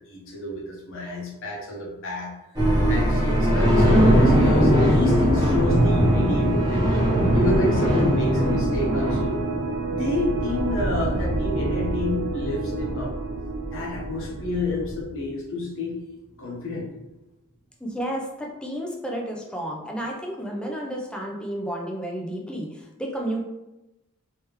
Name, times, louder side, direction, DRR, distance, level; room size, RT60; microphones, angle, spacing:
voice 1, 0.1-2.3 2.9-6.9 7.3-9.4 9.9-13.1 13.7-16.0 16.4-16.9, left 2 dB, 60° left, -3 dB, 1.1 m, -29 dB
sound 1, 2.6-15.0, equal, 20° right, 1.1 m, -22 dB
sound 2, 5.7-15.0, right 6 dB, 65° right, 0.4 m, -31 dB
voice 2, 17.8-23.4, right 1 dB, 5° left, -1 dB, 0.6 m, -31 dB
3.4 x 3.1 x 3.1 m, 0.96 s
head